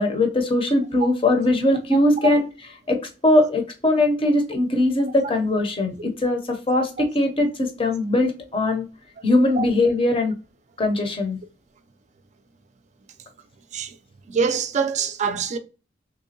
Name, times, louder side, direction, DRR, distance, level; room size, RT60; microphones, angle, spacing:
voice 1, 0.0-2.5 2.9-3.0 3.2-8.9 9.2-10.3 10.8-11.4, left 1 dB, 30° left, 0.6 m, -20 dB
voice 2, 14.3-15.6, right 6 dB, 40° right, 0.4 m, -24 dB
3.5 x 2.9 x 2.8 m
head